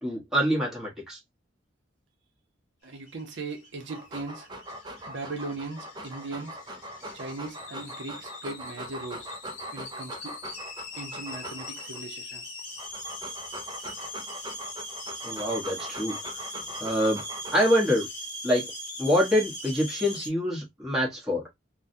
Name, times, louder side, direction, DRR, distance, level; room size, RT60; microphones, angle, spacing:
voice 1, 0.0-1.2 15.2-16.4 16.8-17.2 17.5-18.1 18.4-18.7 19.0-21.5, equal, ahead, 1.2 m, -25 dB
voice 2, 2.8-4.5 5.1-6.6 7.1-9.3 9.7-10.4 10.9-12.4, right 3 dB, 65° right, 0.7 m, -38 dB
sound 1, 3.0-20.3, left 1 dB, 30° left, 1.5 m, -41 dB
Dog, 3.8-12.0 12.6-18.0, right 1 dB, 20° right, 0.4 m, -41 dB
3.4 x 2.2 x 2.6 m
head